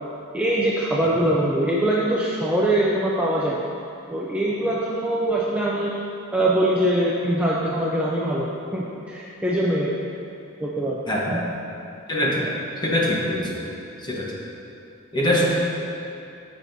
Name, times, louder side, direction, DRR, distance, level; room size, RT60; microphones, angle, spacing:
voice 1, 0.3-3.6 4.1-6.0 6.3-9.9 10.6-11.0 11.3-11.5 12.4-12.5, right 1 dB, 5° right, -5 dB, 0.5 m, -23 dB
voice 2, 12.1-12.5 12.8-13.6 14.0-14.3 15.1-15.5, left 1 dB, 20° left, -4 dB, 1.1 m, -23 dB
13.0 x 5.7 x 2.7 m, 2.7 s
head